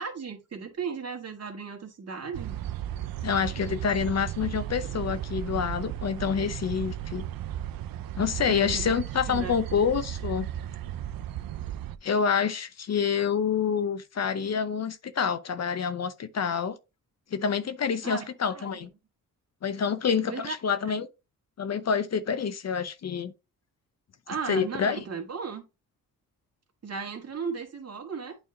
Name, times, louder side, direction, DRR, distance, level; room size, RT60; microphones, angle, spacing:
voice 1, 0.0-2.6 8.4-9.0 9.3-9.6 18.0-18.7 20.3-20.5 20.9-21.0 24.3-25.6 26.8-28.4, right 5 dB, 45° right, 1.7 m, -36 dB
sound 1, 2.3-12.0, right 12 dB, 75° right, 0.6 m, -35 dB
voice 2, 3.2-7.2 8.2-10.5 12.0-16.8 17.3-18.9 19.6-21.1 21.6-23.3 24.5-25.0, left 6 dB, 50° left, 0.7 m, -27 dB
8.7 x 3.5 x 3.8 m
cardioid pair, 90°, 35 cm